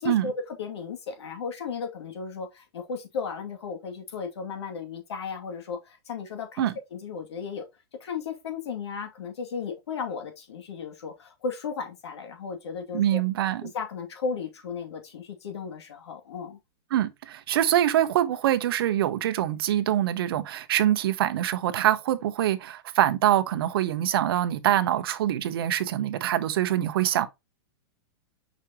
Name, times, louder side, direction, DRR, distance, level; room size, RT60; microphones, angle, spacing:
voice 1, 0.0-7.6 8.0-13.2 13.6-16.6, left 5 dB, 85° left, 2.4 m, -35 dB
voice 2, 12.9-13.6 16.9-27.3, right 12 dB, 60° right, 1.0 m, -24 dB
6.3 x 5.1 x 2.9 m
supercardioid pair, 170°, 14 cm